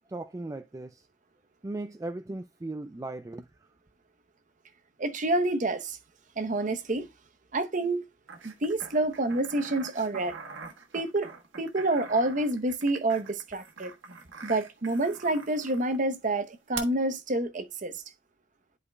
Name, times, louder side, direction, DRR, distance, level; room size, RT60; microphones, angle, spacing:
voice 1, 0.1-1.1 1.6-3.7, right 2 dB, 15° right, 0.3 m, -37 dB
voice 2, 5.0-6.0 6.4-7.1 7.5-8.0 8.4-10.4 10.9-11.3 11.6-13.9 14.4-17.9, right 2 dB, 40° right, 0.8 m, -28 dB
sound 1, 8.3-16.0 16.7-16.8, right 5 dB, 70° right, 1.4 m, -45 dB
10.5 x 4.9 x 2.2 m
head